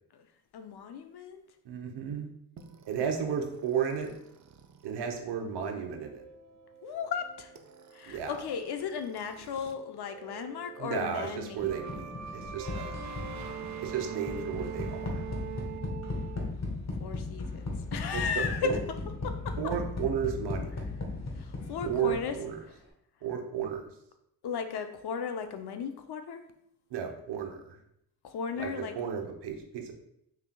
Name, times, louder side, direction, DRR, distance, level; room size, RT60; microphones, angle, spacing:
voice 1, 0.5-1.4 6.8-7.5 7.9-11.7 17.0-19.0 19.2-19.7 21.4-22.4 24.4-26.4 28.2-28.9, left 6 dB, 70° left, 7 dB, 0.6 m, -35 dB
voice 2, 1.6-2.3 2.9-4.1 4.8-6.2 8.1-8.3 10.8-13.0 13.8-15.2 18.1-18.7 19.6-20.7 21.8-22.6 23.2-23.8 26.9-27.8 28.6-28.7 29.0-29.9, right 7 dB, 80° right, 4 dB, 0.8 m, -33 dB
sound 1, 2.6-9.7 10.0-16.4, right 8 dB, 45° right, 0.5 m, -44 dB
sound 2, 11.6-22.5, left 3 dB, 40° left, 1.1 m, -37 dB
5.7 x 3.3 x 2.2 m, 0.75 s
cardioid pair, 55°, 41 cm